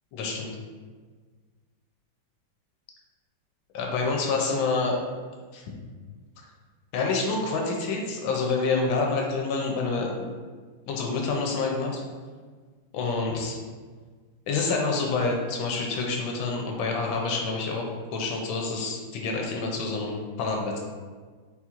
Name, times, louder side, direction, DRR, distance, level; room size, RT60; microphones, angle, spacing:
voice 1, 0.1-0.5 3.7-5.0 5.5-5.6 6.9-10.2 10.9-12.0 12.9-13.6 14.5-20.8, left 4 dB, 85° left, 0 dB, 1.4 m, -27 dB
4.1 x 2.4 x 4.4 m, 1.5 s
omnidirectional pair, 2.1 m